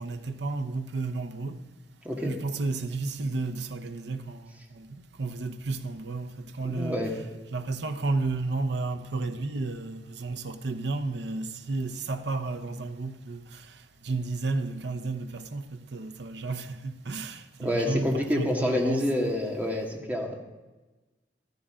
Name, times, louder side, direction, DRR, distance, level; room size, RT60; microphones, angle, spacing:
voice 1, 0.0-1.6 2.2-7.1 7.5-19.0, right 3 dB, 75° right, 0.9 m, -32 dB
voice 2, 6.8-7.1 17.6-20.4, left 1 dB, 10° right, 1.8 m, -27 dB
14.5 x 13.5 x 3.8 m
head